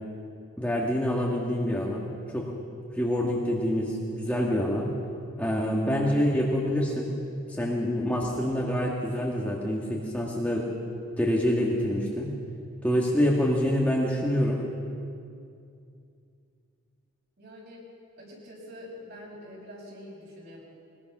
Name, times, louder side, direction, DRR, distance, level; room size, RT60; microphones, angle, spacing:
voice 1, 0.6-2.1 2.3-2.5 3.0-4.9 5.4-7.1 7.5-10.7 11.2-12.3 12.8-14.6, equal, 5° left, -3 dB, 1.8 m, -26 dB
voice 2, 17.4-17.8 18.2-20.6, left 1 dB, 50° right, -3 dB, 6.4 m, -45 dB
22.5 x 20.5 x 6.1 m, 2.5 s
head